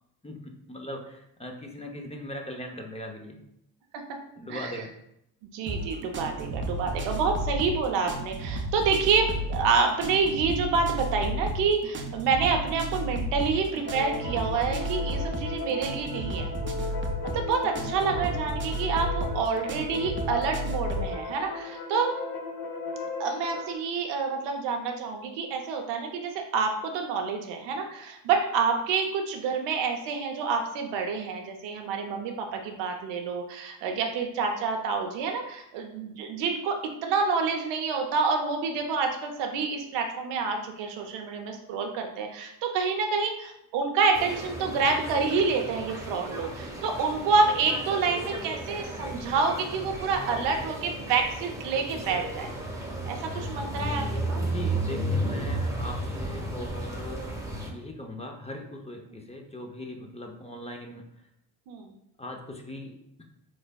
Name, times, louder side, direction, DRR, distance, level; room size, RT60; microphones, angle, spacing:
voice 1, 0.2-3.4 4.4-4.9 17.8-17.9 54.4-57.2 57.7-61.0 62.2-63.0, left 1 dB, 15° left, 2 dB, 0.6 m, -39 dB
voice 2, 5.5-16.5 17.2-22.2 23.2-52.5 53.1-54.4 61.7-61.9, right 5 dB, 85° right, 3 dB, 0.7 m, -28 dB
sound 1, 5.7-21.1, right 1 dB, 30° right, 0.6 m, -33 dB
sound 2, 13.9-23.8, left 3 dB, 55° left, 0.8 m, -36 dB
sound 3, 44.1-57.7, right 1 dB, 5° right, 0.9 m, -34 dB
3.9 x 3.2 x 2.2 m, 0.79 s
supercardioid pair, 60°, 41 cm